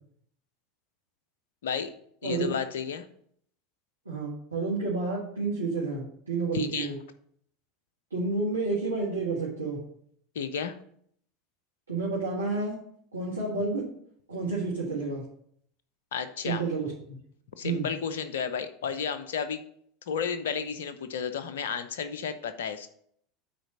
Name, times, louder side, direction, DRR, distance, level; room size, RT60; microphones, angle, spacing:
voice 1, 1.6-1.9 2.2-3.1 6.5-6.9 10.3-10.8 16.1-16.6 17.6-19.6 20.1-22.9, left 7 dB, 65° left, 10 dB, 0.7 m, -32 dB
voice 2, 2.2-2.5 4.1-7.0 8.1-9.8 11.9-12.7 13.1-13.9 14.3-15.2 16.4-17.2 17.6-17.9, right 3 dB, 80° right, -5 dB, 1.7 m, -30 dB
9.1 x 4.1 x 6.2 m, 0.66 s
figure-of-eight pair, 75°, 0 cm